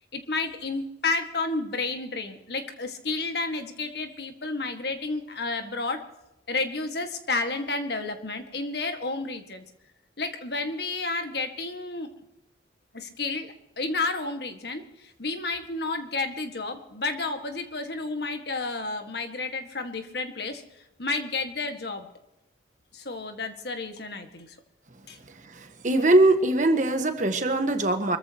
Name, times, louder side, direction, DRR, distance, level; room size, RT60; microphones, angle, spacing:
voice 1, 0.1-6.0 6.5-9.6 10.2-12.1 12.9-20.6 21.0-22.1 22.9-24.6 25.1-25.2, left 3 dB, 60° left, 6 dB, 1.8 m, -31 dB
voice 2, 25.3-28.2, right 2 dB, 40° right, 7 dB, 1.5 m, -22 dB
25.5 x 14.5 x 3.0 m, 0.92 s
head